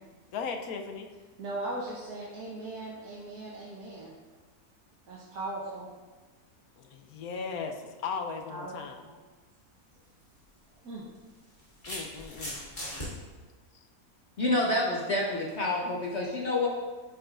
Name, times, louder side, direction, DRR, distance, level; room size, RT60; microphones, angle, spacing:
voice 1, 0.3-1.1 6.8-9.0 11.9-12.6, left 5 dB, 80° left, 5 dB, 1.1 m, -37 dB
voice 2, 1.4-4.1 5.1-5.9 8.5-9.2 10.8-11.0, right 2 dB, 85° right, -6 dB, 1.5 m, -38 dB
sound 1, 9.9-10.1 11.1-13.1, equal, 30° left, 2.3 m, -39 dB
voice 3, 14.4-16.7, left 2 dB, 55° left, -3 dB, 1.0 m, -28 dB
10.0 x 4.9 x 2.5 m, 1.3 s
omnidirectional pair, 1.6 m